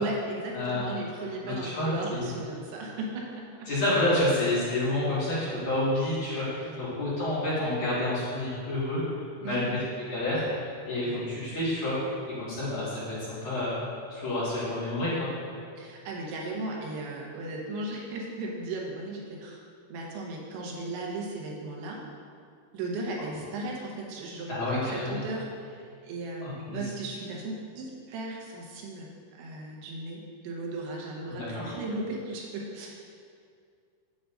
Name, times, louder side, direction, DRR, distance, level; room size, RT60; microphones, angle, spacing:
voice 1, 0.0-3.7 6.6-6.9 9.4-9.8 11.0-11.2 15.8-19.6 19.9-22.0 22.7-33.0, right 2 dB, 80° right, -1 dB, 3.3 m, -36 dB
voice 2, 1.4-2.3 3.7-9.0 9.4-9.8 10.1-13.8 14.1-15.3 24.5-25.2 26.4-26.8 31.3-31.7, left 1 dB, 55° left, -10 dB, 2.6 m, -29 dB
9.7 x 8.3 x 2.5 m, 2.3 s
omnidirectional pair, 5.3 m